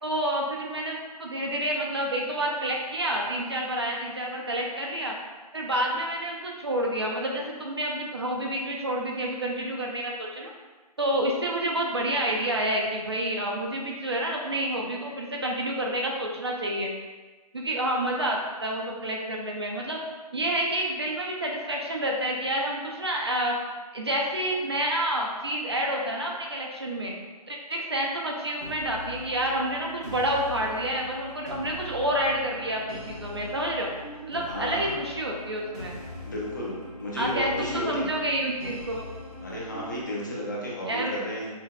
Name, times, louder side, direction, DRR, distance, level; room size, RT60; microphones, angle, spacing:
voice 1, 0.0-5.1 5.5-10.5 11.0-16.9 17.5-20.0 20.3-23.5 23.9-27.1 27.5-33.9 34.3-36.0 37.2-39.1 40.9-41.1, right 1 dB, 40° right, -1 dB, 0.4 m, -29 dB
sound 1, 28.6-40.0, left 1 dB, 45° left, 1.4 m, -41 dB
voice 2, 34.5-34.9 36.2-38.1 39.4-41.5, equal, 30° left, -4 dB, 0.6 m, -33 dB
5.6 x 2.2 x 2.2 m, 1.3 s
hypercardioid pair, 180°, 21 cm